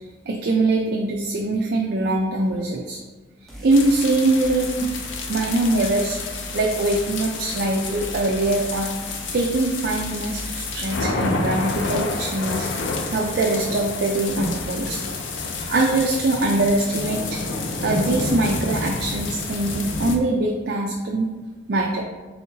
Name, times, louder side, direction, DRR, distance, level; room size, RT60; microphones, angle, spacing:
voice 1, 0.3-3.0 3.6-4.9 5.3-6.2 6.5-8.9 9.3-15.0 15.7-17.4 17.8-21.3 21.7-22.0, right 2 dB, 60° right, -1 dB, 0.4 m, -22 dB
sound 1, 3.5-4.0 4.4-10.9, equal, ahead, 0.6 m, -39 dB
sound 2, 3.7-20.2, left 3 dB, 85° left, 0.5 m, -29 dB
4.2 x 3.5 x 2.8 m, 1.3 s
head